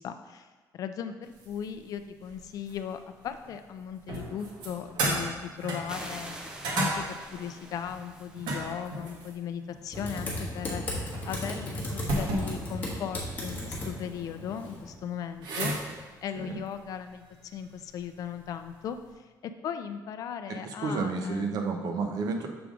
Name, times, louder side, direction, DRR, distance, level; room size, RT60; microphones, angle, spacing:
voice 1, 0.0-6.4 6.7-10.8 11.2-21.6, left 8 dB, 50° left, 9 dB, 0.4 m, -38 dB
sound 1, 1.3-2.9 3.2-19.1, right 1 dB, 80° right, 1.4 m, -36 dB
sound 2, 5.9-9.2, right 1 dB, 10° right, 0.5 m, -45 dB
Typing, 9.9-14.9, left 1 dB, 25° left, 1.4 m, -36 dB
voice 2, 20.5-22.5, right 4 dB, 60° right, 3 dB, 0.8 m, -31 dB
6.9 x 4.9 x 3.7 m, 1.3 s
cardioid pair, 175°, 7 cm